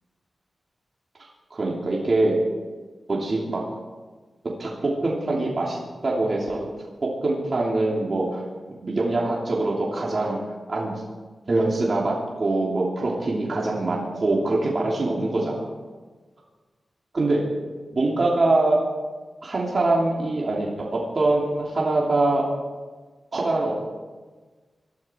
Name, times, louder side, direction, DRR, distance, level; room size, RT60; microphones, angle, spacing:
voice 1, 1.5-2.3 3.1-3.6 4.6-6.7 7.0-8.5 8.8-10.4 10.7-10.9 11.5-15.7 17.1-17.4 17.9-18.8 19.4-22.5 23.3-23.7, right 2 dB, 45° right, -4 dB, 3.1 m, -23 dB
21.5 x 13.0 x 4.6 m, 1.3 s
wide cardioid pair, 120°, 0 cm